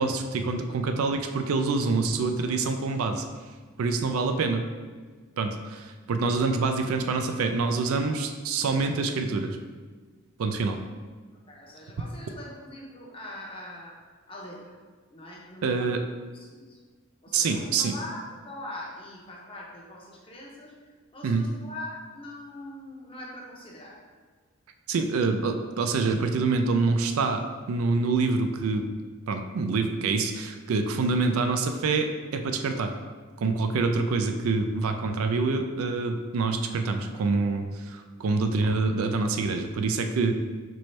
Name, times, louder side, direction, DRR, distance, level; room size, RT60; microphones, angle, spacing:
voice 1, 0.0-3.2 3.8-4.7 5.4-9.6 10.4-10.8 15.6-16.0 17.3-17.9 21.2-21.5 24.9-28.9 29.3-32.9 33.4-40.3, right 4 dB, 80° right, 6 dB, 0.4 m, -26 dB
voice 2, 11.3-14.0 14.3-14.7 15.1-15.9 16.4-16.8 17.2-20.7 21.1-24.0, left 1 dB, 25° left, -3 dB, 0.7 m, -42 dB
4.3 x 3.1 x 3.2 m, 1.5 s
head